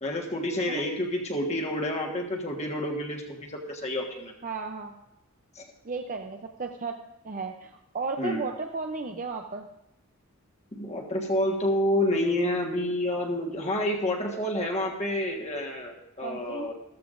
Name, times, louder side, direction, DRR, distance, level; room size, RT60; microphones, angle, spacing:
voice 1, 0.0-4.3 5.5-5.6 8.2-8.4 10.8-16.7, left 1 dB, 30° left, 0 dB, 1.4 m, -29 dB
voice 2, 4.4-4.9 5.8-7.0 7.2-9.7 16.2-16.7, right 4 dB, 35° right, 4 dB, 0.6 m, -34 dB
14.0 x 14.0 x 2.6 m, 0.89 s
head